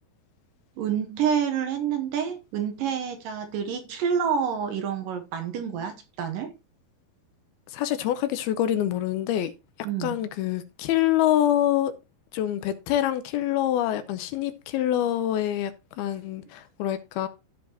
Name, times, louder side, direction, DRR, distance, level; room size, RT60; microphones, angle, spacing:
voice 1, 0.8-6.5 9.8-10.2, right 7 dB, 70° right, 2.3 m, -28 dB
voice 2, 7.7-9.5 10.0-11.9 12.3-15.7 16.0-17.3, left 12 dB, 80° left, 2.6 m, -25 dB
15.0 x 5.1 x 2.8 m
omnidirectional pair, 4.5 m